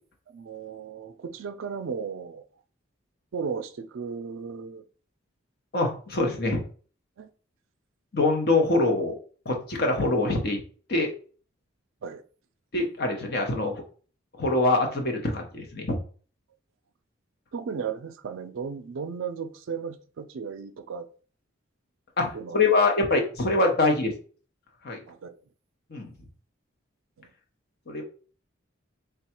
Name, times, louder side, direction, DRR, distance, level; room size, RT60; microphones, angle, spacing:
voice 1, 0.3-2.4 3.3-4.9 7.2-7.3 12.0-12.2 17.5-21.1 22.3-22.6 25.1-25.4 27.2-27.3, right 6 dB, 70° right, 0.4 m, -35 dB
voice 2, 5.7-6.6 8.1-9.1 9.5-10.6 10.9-11.1 12.7-13.7 14.4-16.0 22.2-24.1 24.8-25.0 25.9-26.1 27.9-28.0, left 2 dB, 50° left, 0.8 m, -24 dB
3.4 x 2.3 x 4.3 m
head